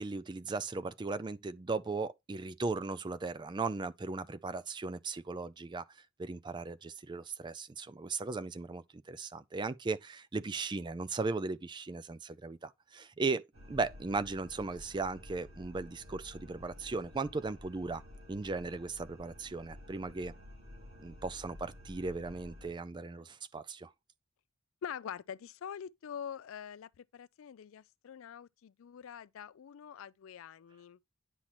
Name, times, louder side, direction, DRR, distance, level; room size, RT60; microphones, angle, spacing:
voice 1, 0.0-5.8 6.2-18.0 18.3-20.3 21.0-23.9, right 3 dB, 20° right, 0.3 m, -37 dB
sound 1, 13.5-22.7, left 1 dB, 85° right, 5.0 m, -52 dB
voice 2, 24.8-31.0, left 8 dB, 65° left, 0.4 m, -45 dB
9.9 x 5.7 x 3.0 m
head